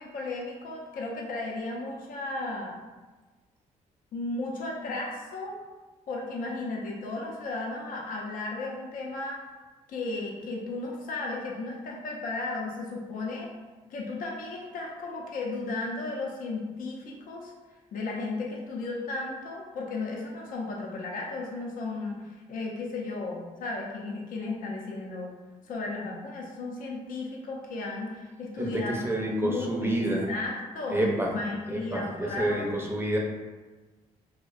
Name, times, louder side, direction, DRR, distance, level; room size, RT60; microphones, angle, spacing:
voice 1, 0.0-2.7 4.1-5.6 6.1-9.4 9.9-13.5 13.9-17.5 17.9-25.3 25.7-29.9 30.3-32.7, left 2 dB, 65° left, -1 dB, 0.5 m, -34 dB
voice 2, 28.6-30.3 30.9-31.3 31.7-33.2, right 1 dB, 15° right, -1 dB, 0.5 m, -28 dB
2.5 x 2.1 x 2.4 m, 1.3 s
supercardioid pair, 60°, 15 cm